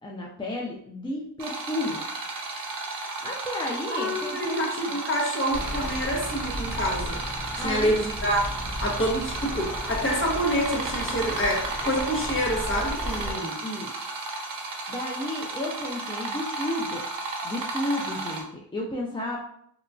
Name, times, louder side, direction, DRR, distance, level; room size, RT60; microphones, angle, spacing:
voice 1, 0.0-2.0 3.2-4.9 7.6-8.0 13.2-14.1 14.9-17.0 17.4-19.4, left 1 dB, 15° left, -3 dB, 0.3 m, -33 dB
sound 1, 1.4-18.4, right 2 dB, 55° right, 0.6 m, -33 dB
voice 2, 3.9-7.2 7.6-8.5 8.8-13.6, equal, 30° left, -2 dB, 0.9 m, -27 dB
sound 2, 5.5-13.3, equal, 5° right, 1.0 m, -35 dB
2.9 x 2.4 x 2.3 m, 0.68 s
wide cardioid pair, 85°, 41 cm